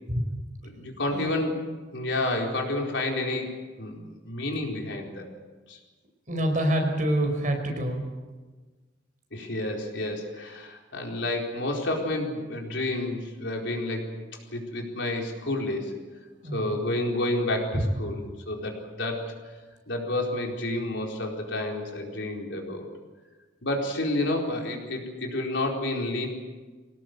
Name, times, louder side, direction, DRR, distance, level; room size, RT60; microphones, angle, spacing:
voice 1, 0.6-1.6 1.9-3.5 3.8-5.3 5.7-5.8 9.3-14.1 14.5-15.9 16.5-19.4 19.9-22.9 23.6-26.3, left 1 dB, 65° left, 1 dB, 4.4 m, -30 dB
voice 2, 6.3-8.0 16.4-16.8 17.7-17.8, right 1 dB, 45° right, 3 dB, 5.0 m, -26 dB
24.0 x 18.5 x 8.1 m, 1.3 s
head